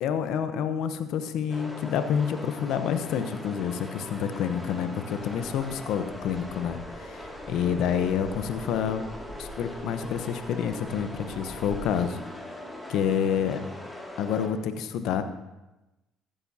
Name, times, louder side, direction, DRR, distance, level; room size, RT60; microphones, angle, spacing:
voice 1, 0.0-9.0 9.4-12.2 12.9-13.6 14.2-15.2, left 8 dB, 70° left, 9 dB, 0.9 m, -28 dB
sound 1, 1.5-14.5, left 1 dB, 5° left, 2.3 m, -41 dB
sound 2, 5.2-11.9, equal, 25° left, 4.8 m, -47 dB
15.0 x 11.0 x 2.8 m, 1.0 s
supercardioid pair, 75°, 0 cm